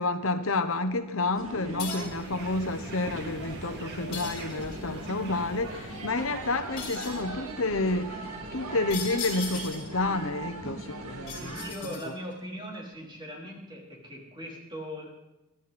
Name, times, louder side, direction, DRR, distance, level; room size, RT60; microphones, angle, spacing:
voice 1, 0.0-11.6, left 2 dB, 70° left, 1.0 m, -30 dB
sound 1, 1.3-11.7, right 2 dB, 85° right, 2.3 m, -40 dB
sound 2, 1.8-2.2 4.1-4.9 6.8-7.3 8.9-10.0 11.3-12.3, left 5 dB, 45° left, 8.0 m, -38 dB
sound 3, 2.0-7.0, right 2 dB, 50° right, 2.3 m, -45 dB
voice 2, 11.4-15.1, equal, 20° right, 3.9 m, -40 dB
23.5 x 13.5 x 4.3 m
head